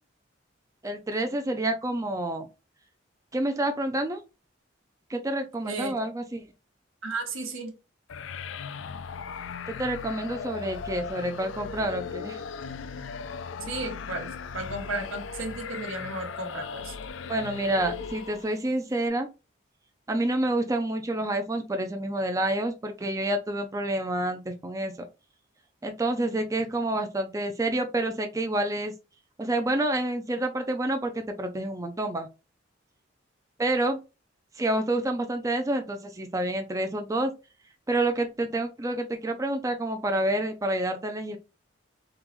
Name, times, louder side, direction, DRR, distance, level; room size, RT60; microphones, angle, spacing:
voice 1, 0.8-2.5 3.3-4.2 5.1-6.4 9.7-12.4 17.3-19.3 20.1-25.1 25.8-28.9 29.4-32.3 33.6-34.0 34.6-37.3 37.9-41.4, right 1 dB, 15° right, 0.4 m, -28 dB
voice 2, 5.6-6.1 7.0-7.7 13.7-16.9, right 2 dB, 85° right, 1.1 m, -34 dB
sound 1, 8.1-18.7, left 6 dB, 70° left, 0.4 m, -38 dB
3.7 x 3.0 x 3.0 m
head